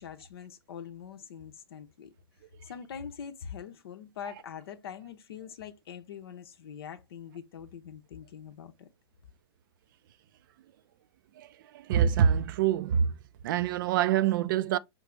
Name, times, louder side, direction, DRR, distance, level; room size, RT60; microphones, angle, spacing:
voice 1, 0.0-2.1 2.6-8.9, left 8 dB, 65° left, 0.6 m, -43 dB
voice 2, 11.4-13.2 13.4-14.8, right 8 dB, 55° right, 0.4 m, -26 dB
5.1 x 2.5 x 3.1 m
hypercardioid pair, 110°, 14 cm